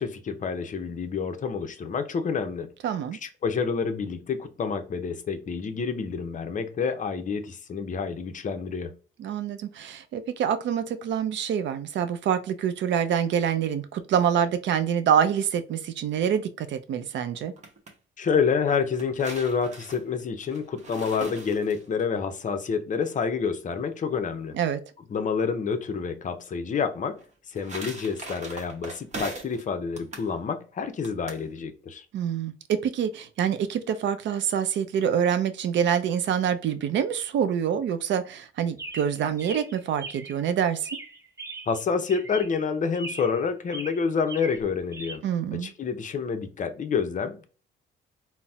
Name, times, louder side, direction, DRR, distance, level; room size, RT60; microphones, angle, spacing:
voice 1, 0.0-2.7 3.1-9.0 18.2-24.6 25.1-27.2 27.5-32.0 41.7-45.2 45.5-47.4, left 5 dB, 40° left, 0.5 m, -28 dB
voice 2, 2.8-3.2 9.2-17.5 24.5-24.8 32.1-40.9 45.2-45.7, right 8 dB, 65° right, 0.5 m, -26 dB
sound 1, 17.4-17.9 18.7-22.0 27.2-29.6 30.0-30.3 31.0-31.5, right 2 dB, 35° right, 0.8 m, -40 dB
Chirp tweet, 38.8-40.4 40.8-41.8 42.1-42.6 42.9-43.4 43.7-45.2, right 2 dB, 15° right, 0.5 m, -40 dB
3.9 x 2.0 x 2.3 m
cardioid pair, 90°, 20 cm